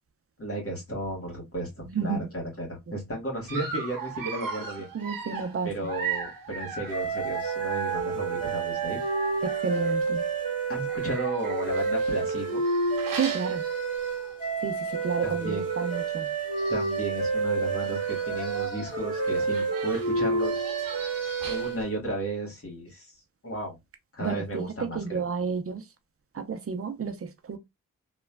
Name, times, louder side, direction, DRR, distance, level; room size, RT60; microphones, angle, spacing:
voice 1, 0.4-4.9 5.6-9.1 10.7-12.6 15.2-15.7 16.7-20.7 21.5-23.1 23.4-23.8 24.1-25.2, right 1 dB, 40° left, 1.6 m, -34 dB
Dog, 3.5-10.1 10.8-14.4 14.9-15.0 15.3-15.4 16.3-16.4 16.5-17.1 17.7-21.8, right 6 dB, 85° right, 0.9 m, -38 dB
voice 2, 4.9-5.7 9.6-10.2 13.1-13.6 14.6-16.3 24.2-25.8 26.3-27.6, right 5 dB, 45° right, 0.6 m, -31 dB
sound 1, 6.9-22.0, right 4 dB, 25° left, 1.6 m, -29 dB
3.1 x 2.4 x 2.2 m
cardioid pair, 50°, 33 cm